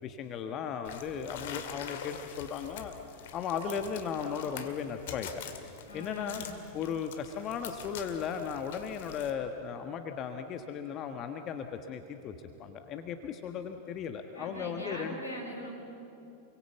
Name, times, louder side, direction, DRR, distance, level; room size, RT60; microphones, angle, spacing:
voice 1, 0.0-2.9 3.3-5.3 5.9-6.4 6.7-12.3 12.6-15.2, left 7 dB, 35° left, 6 dB, 1.4 m, -36 dB
sound 1, 0.8-9.3, left 9 dB, 55° left, 2.1 m, -45 dB
voice 2, 5.9-6.5 14.3-15.7, equal, 85° left, 0 dB, 6.0 m, -41 dB
29.0 x 23.0 x 8.3 m, 2.9 s
figure-of-eight pair, 90°, 0 cm